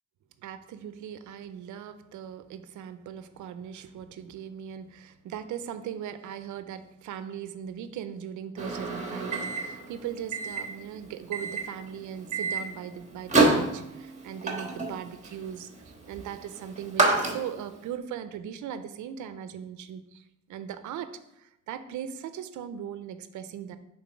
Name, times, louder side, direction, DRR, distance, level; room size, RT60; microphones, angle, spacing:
voice 1, 0.4-20.2 20.5-23.8, right 9 dB, 75° right, 11 dB, 0.6 m, -39 dB
Microwave oven, 8.6-17.8, right 2 dB, 25° right, 1.3 m, -29 dB
5.8 x 3.9 x 4.9 m, 0.85 s
cardioid pair, 90°, 30 cm